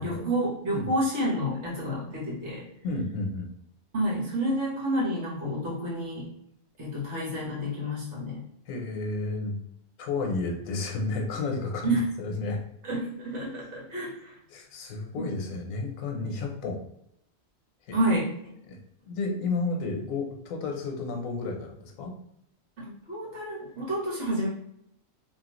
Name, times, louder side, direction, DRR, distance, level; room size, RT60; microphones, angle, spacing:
voice 1, 0.0-2.6 3.9-6.3 6.8-8.4 11.8-12.0 12.9-14.3 15.1-15.4 17.9-18.3 23.1-24.5, equal, 60° right, -5 dB, 1.4 m, -29 dB
voice 2, 2.8-3.5 8.7-9.6 10.0-12.6 13.6-13.7 14.5-16.8 17.9-18.0 18.6-18.8 19.0-22.1, left 3 dB, 85° left, 3 dB, 1.1 m, -32 dB
3.0 x 2.4 x 2.9 m, 0.80 s
omnidirectional pair, 1.4 m